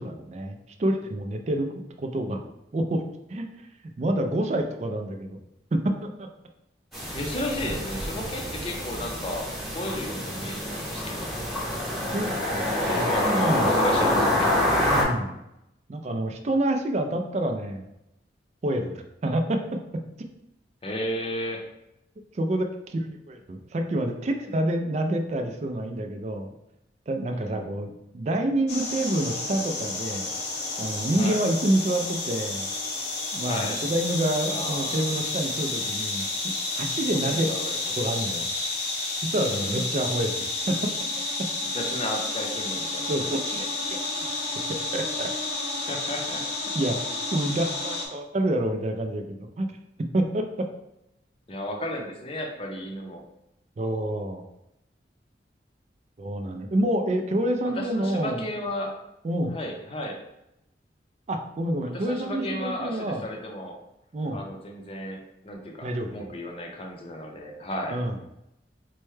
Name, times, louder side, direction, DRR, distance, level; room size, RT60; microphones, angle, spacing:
voice 1, 0.0-2.4 2.7-3.0 3.3-3.5 4.0-5.4 5.7-6.3 12.1-13.7 14.8-15.4 15.9-17.8 18.6-20.0 22.3-26.5 27.1-30.3 30.8-32.7 33.3-37.5 37.9-38.5 39.2-40.8 41.4-41.5 43.1-44.3 44.7-45.3 46.7-49.7 50.1-50.7 53.8-54.4 56.2-58.5 59.2-59.6 61.3-63.3 64.1-64.4 65.8-66.2 67.9-68.2, right 1 dB, 40° right, 4 dB, 0.4 m, -28 dB
sound 1, 6.9-15.0, left 1 dB, ahead, 0.9 m, -26 dB
voice 2, 7.1-11.3 12.8-14.5 20.8-21.6 27.3-27.7 31.1-31.4 33.4-33.8 34.5-35.1 37.2-37.9 39.4-40.0 41.7-43.6 45.8-46.4 51.5-53.2 57.8-58.9 59.5-60.2 61.9-63.8 64.3-68.0, left 1 dB, 30° left, 2 dB, 0.5 m, -34 dB
sound 2, 28.7-48.1, left 2 dB, 70° left, 0.7 m, -31 dB
4.4 x 2.1 x 3.2 m, 0.85 s
head